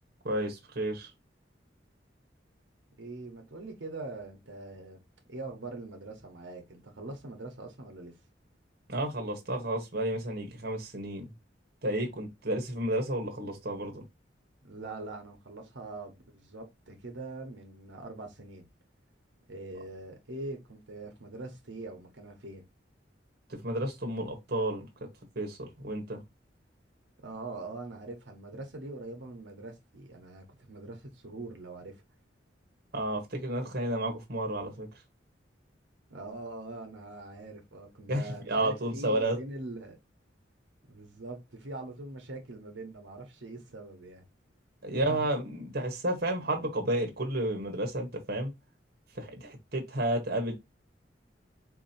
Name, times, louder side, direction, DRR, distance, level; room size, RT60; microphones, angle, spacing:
voice 1, 0.2-1.1 8.9-11.3 11.8-14.0 23.5-25.1 25.3-26.2 32.9-34.9 38.1-39.4 44.8-48.5 49.1-50.5, right 1 dB, 60° right, 1.2 m, -31 dB
voice 2, 3.0-5.0 5.3-8.2 14.6-18.6 19.5-22.6 27.2-32.0 36.1-40.0 40.9-44.2 44.9-45.2, right 2 dB, 80° right, 1.2 m, -43 dB
4.2 x 2.9 x 4.2 m
head